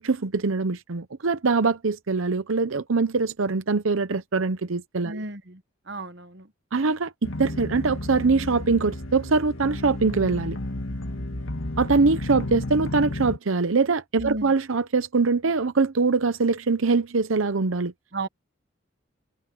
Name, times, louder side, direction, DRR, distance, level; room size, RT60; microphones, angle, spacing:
voice 1, 0.0-5.2 6.7-10.6 11.8-17.9, right 4 dB, 75° right, 0.8 m, -23 dB
voice 2, 5.0-5.6 5.9-6.5 14.2-14.5 18.1-18.3, right 2 dB, 55° right, 1.2 m, -33 dB
sound 1, 7.2-13.4, left 1 dB, 80° left, 2.0 m, -32 dB
head